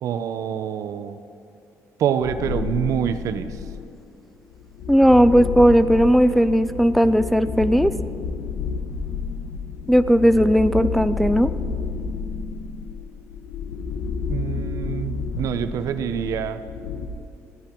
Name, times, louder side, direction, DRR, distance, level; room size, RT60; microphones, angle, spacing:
voice 1, 0.0-1.2 2.0-3.6 14.3-16.6, right 8 dB, 70° right, 10 dB, 0.8 m, -26 dB
sound 1, 2.2-3.9 4.5-17.1, left 5 dB, 75° left, 1.3 m, -30 dB
voice 2, 4.9-7.9 9.9-11.5, equal, ahead, 11 dB, 0.4 m, -16 dB
20.0 x 14.0 x 4.6 m, 2.6 s
cardioid pair, 140°, 6 cm